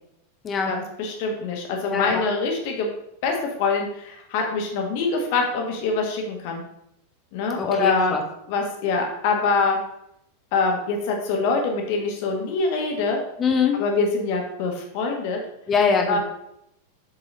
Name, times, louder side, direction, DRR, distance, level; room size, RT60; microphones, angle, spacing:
voice 1, 0.7-2.9 3.2-6.6 7.3-8.2 8.5-9.8 10.5-13.2 13.7-15.4 16.1-16.2, left 4 dB, 50° left, 2 dB, 1.6 m, -24 dB
voice 2, 1.9-2.3 7.6-8.2 13.4-13.7 15.7-16.2, left 5 dB, 25° left, 3 dB, 1.0 m, -22 dB
7.6 x 4.8 x 4.0 m, 0.77 s
figure-of-eight pair, 90°, 0 cm